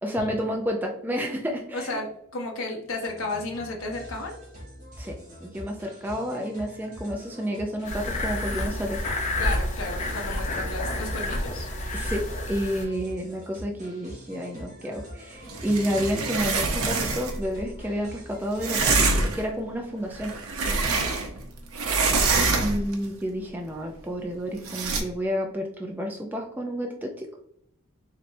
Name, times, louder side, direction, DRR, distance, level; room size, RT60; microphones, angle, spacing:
voice 1, 0.0-1.9 5.0-9.0 10.6-10.7 11.9-20.3 22.6-27.3, equal, 10° right, 0 dB, 0.4 m, -30 dB
voice 2, 1.7-4.3 8.4-8.8 9.4-11.7 20.9-21.2, left 2 dB, 65° left, 1 dB, 1.0 m, -34 dB
sound 1, 3.0-19.3, equal, 35° right, 1.4 m, -44 dB
sound 2, 7.8-12.8, left 1 dB, 30° left, 0.6 m, -29 dB
sound 3, 15.5-17.4 18.6-19.5 20.1-21.5 21.7-22.9 24.6-25.0, right 3 dB, 75° right, 0.7 m, -25 dB
4.0 x 3.2 x 2.6 m, 0.72 s
head